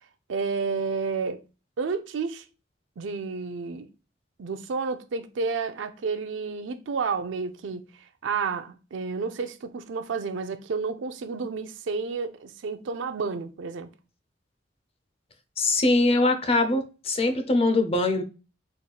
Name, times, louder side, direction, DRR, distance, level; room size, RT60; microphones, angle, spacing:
voice 1, 0.3-1.4 1.8-2.4 3.0-3.9 4.4-13.9, right 5 dB, 80° right, 0.5 m, -31 dB
voice 2, 15.6-18.2, left 2 dB, 35° left, 0.5 m, -22 dB
4.2 x 3.2 x 2.3 m
head